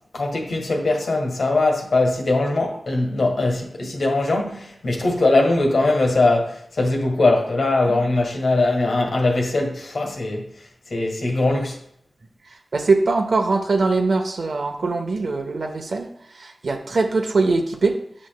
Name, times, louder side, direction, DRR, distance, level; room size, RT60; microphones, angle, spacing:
voice 1, 0.1-10.5 10.9-11.8, left 2 dB, 80° left, 1.6 m, -21 dB
voice 2, 12.7-18.0, right 3 dB, 75° right, 0.9 m, -22 dB
9.7 x 6.1 x 2.3 m
cardioid pair, 55°, 0 cm